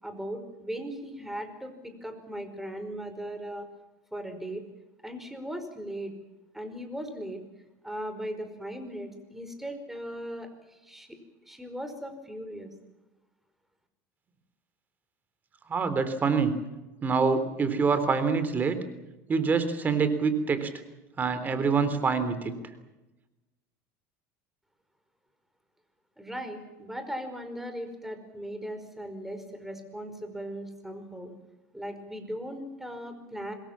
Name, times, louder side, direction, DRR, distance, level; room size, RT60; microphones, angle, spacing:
voice 1, 0.0-3.7 4.1-4.6 5.0-6.1 6.5-7.4 7.8-11.2 11.4-12.7 26.2-31.3 31.7-33.5, equal, 5° right, 7 dB, 5.1 m, -38 dB
voice 2, 15.7-16.5 17.0-18.8 19.3-20.7 21.2-22.5, right 5 dB, 25° right, 11 dB, 3.3 m, -25 dB
26.5 x 21.0 x 7.5 m, 1.1 s
supercardioid pair, 120°, 7 cm